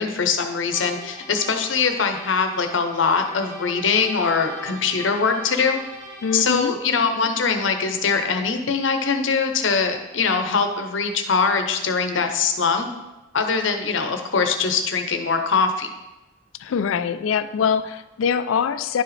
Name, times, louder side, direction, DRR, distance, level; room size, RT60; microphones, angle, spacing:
voice 1, 0.0-5.8 6.3-12.9 13.3-15.9, left 5 dB, 70° left, 6 dB, 0.7 m, -22 dB
sound 1, 0.7-6.6, left 1 dB, 35° right, 1.6 m, -39 dB
voice 2, 6.2-6.8 16.6-19.0, left 6 dB, 90° left, 13 dB, 0.4 m, -23 dB
10.5 x 4.8 x 3.3 m, 1.1 s
head